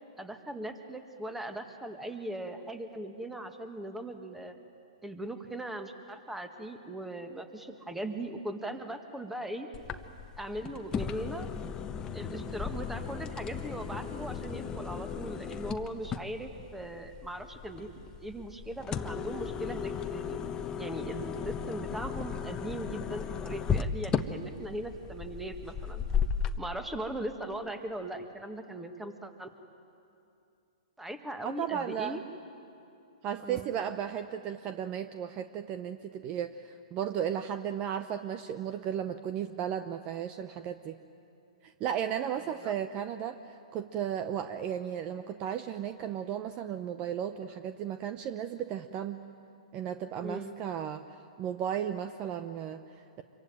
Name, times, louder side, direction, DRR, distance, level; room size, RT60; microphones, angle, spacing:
voice 1, 0.2-4.6 5.0-9.7 10.4-11.5 12.1-20.4 20.8-26.0 26.6-29.5 31.0-32.2 33.4-33.7 42.6-42.7 50.2-50.5, right 1 dB, 5° right, 7 dB, 1.8 m, -39 dB
sound 1, 9.7-26.6, left 7 dB, 20° left, 1.1 m, -36 dB
voice 2, 31.4-32.2 33.2-41.0 41.6-43.4 43.7-49.2 49.7-53.2, right 9 dB, 35° right, 10 dB, 0.8 m, -35 dB
26.0 x 23.0 x 9.2 m, 2.6 s
hypercardioid pair, 125°, 4 cm